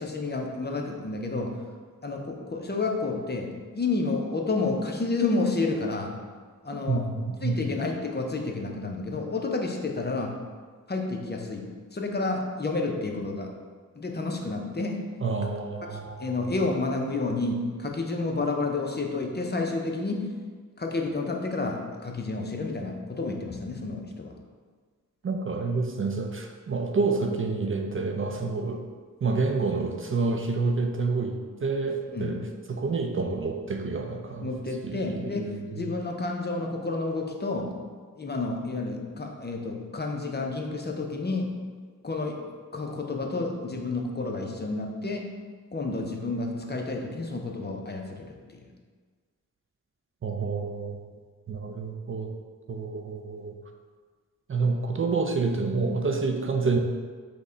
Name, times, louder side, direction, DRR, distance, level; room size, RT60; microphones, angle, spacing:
voice 1, 0.0-1.5 2.0-6.2 6.6-7.1 7.4-10.3 10.9-13.5 13.9-15.0 15.9-20.3 20.8-24.3 32.1-32.4 34.4-37.7 38.2-41.5 42.0-42.4 42.7-45.3 45.7-48.6, left 3 dB, 30° left, 2 dB, 0.6 m, -30 dB
voice 2, 6.7-7.6 15.2-16.5 25.2-28.8 29.2-32.4 32.7-34.5 34.8-35.9 50.2-51.0 51.5-52.3 52.7-53.6 54.5-56.8, right 4 dB, 40° right, 3 dB, 0.4 m, -28 dB
5.1 x 2.2 x 3.8 m, 1.5 s
cardioid pair, 55°, 33 cm